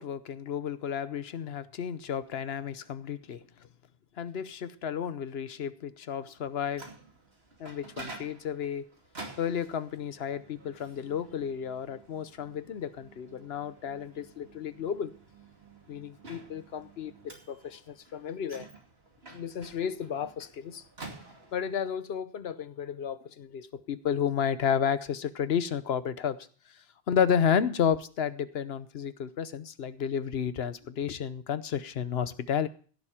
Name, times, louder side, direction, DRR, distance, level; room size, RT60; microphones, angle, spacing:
voice 1, 0.0-3.4 4.2-6.8 7.6-8.9 9.4-15.1 15.9-18.7 19.3-20.8 21.5-26.4 27.1-32.7, left 8 dB, 80° left, 14 dB, 1.1 m, -32 dB
Microwave oven, 6.4-21.8, right 3 dB, 80° right, 2.8 m, -50 dB
16.0 x 7.3 x 4.9 m, 0.42 s
omnidirectional pair, 1.0 m